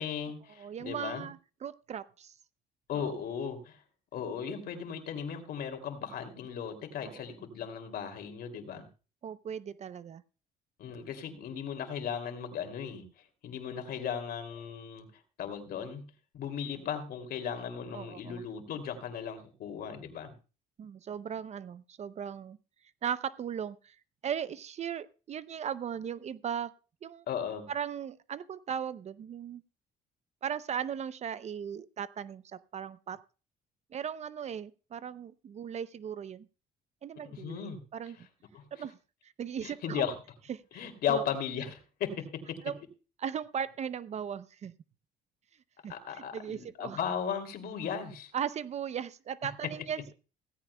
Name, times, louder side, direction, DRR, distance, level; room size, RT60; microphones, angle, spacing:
voice 1, 0.0-1.3 2.9-3.8 4.1-8.9 10.8-13.1 13.4-15.1 15.4-16.0 16.3-20.3 27.3-27.7 37.3-37.8 38.5-38.7 39.6-40.2 40.7-42.6 45.9-48.3 49.4-49.7, left 7 dB, 65° left, 6 dB, 2.7 m, -36 dB
voice 2, 0.6-2.3 3.0-3.1 7.0-7.2 9.2-10.2 17.9-18.4 20.8-22.6 23.0-23.9 24.2-26.7 27.0-27.2 27.7-29.6 30.4-33.2 33.9-36.5 37.0-38.2 38.7-39.0 39.4-40.1 40.5-40.6 41.1-41.2 42.6-42.7 43.2-44.7 45.8-47.0 48.3-50.1, right 8 dB, 40° right, 16 dB, 0.6 m, -37 dB
17.0 x 15.0 x 2.2 m, 0.34 s
cardioid pair, 110°, 17 cm